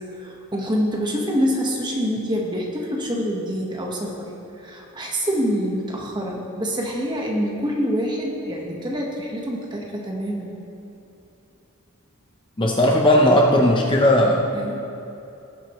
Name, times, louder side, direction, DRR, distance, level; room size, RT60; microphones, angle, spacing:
voice 1, 0.1-4.3 4.6-10.5 14.5-14.8, equal, 20° right, -1 dB, 1.4 m, -26 dB
voice 2, 12.6-14.5, left 1 dB, 20° left, 0 dB, 0.7 m, -16 dB
19.0 x 8.0 x 3.1 m, 2.9 s
head